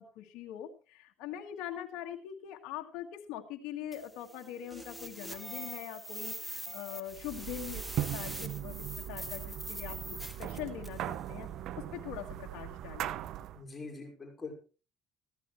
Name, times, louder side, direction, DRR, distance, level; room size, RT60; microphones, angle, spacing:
voice 1, 0.0-11.5 11.8-13.2, left 11 dB, 80° left, 1 dB, 1.7 m, -43 dB
sound 1, 3.9-11.1, right 1 dB, 10° right, 2.3 m, -43 dB
sound 2, 7.1-13.6, right 12 dB, 65° right, 0.8 m, -39 dB
voice 2, 13.5-14.5, left 4 dB, 25° left, 0 dB, 4.8 m, -43 dB
15.0 x 14.5 x 3.2 m, 0.35 s
supercardioid pair, 85°, 0 cm